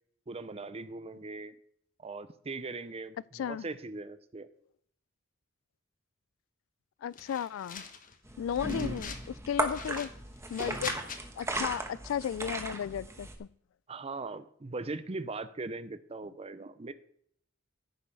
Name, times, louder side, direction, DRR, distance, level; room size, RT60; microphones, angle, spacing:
voice 1, 0.3-1.6 2.0-4.5 8.7-9.0 13.9-16.9, right 3 dB, 30° right, 0.6 m, -40 dB
voice 2, 3.3-3.6 7.0-7.8 8.4-9.1 9.5-10.1 10.5-11.0 11.4-13.5, left 9 dB, 85° left, 0.3 m, -34 dB
sound 1, 7.1-8.1 8.5-9.3 9.6-11.2, left 6 dB, 45° left, 1.1 m, -44 dB
sound 2, 8.2-13.3, right 2 dB, 15° right, 1.2 m, -36 dB
14.5 x 5.5 x 5.4 m
head